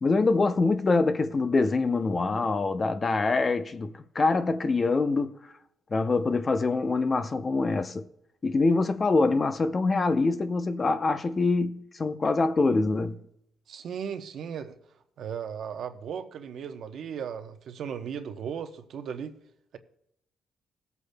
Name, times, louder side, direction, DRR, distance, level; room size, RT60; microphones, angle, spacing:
voice 1, 0.0-5.4 5.9-8.0 8.4-13.2, left 3 dB, 30° left, 0.6 m, -25 dB
voice 2, 13.7-14.8 15.2-19.3, right 7 dB, 65° right, 0.9 m, -36 dB
20.5 x 8.2 x 2.2 m
cardioid pair, 110°, 0 cm